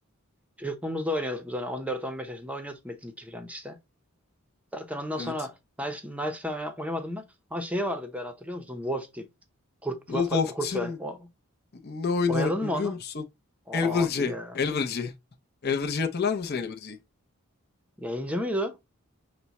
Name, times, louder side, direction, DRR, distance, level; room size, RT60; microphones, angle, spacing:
voice 1, 0.6-3.8 4.7-7.2 7.5-9.3 9.8-11.3 12.3-13.0 13.7-14.6 18.0-18.8, equal, 5° right, 0.7 m, -32 dB
voice 2, 10.1-11.0 11.8-13.2 13.7-15.1 15.6-17.0, left 5 dB, 45° left, 0.6 m, -28 dB
6.0 x 2.2 x 4.0 m
head